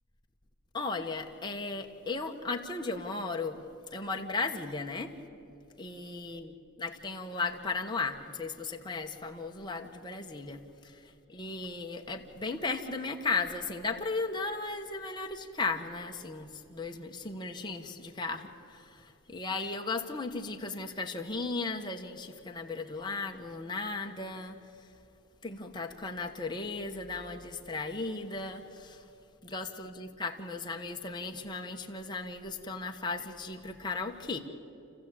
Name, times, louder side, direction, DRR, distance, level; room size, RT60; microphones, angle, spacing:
voice 1, 0.7-3.6 3.9-5.2 5.8-24.6 25.4-29.0 29.4-34.4, left 3 dB, 20° left, 2 dB, 1.4 m, -36 dB
29.5 x 15.0 x 8.7 m, 2.8 s
head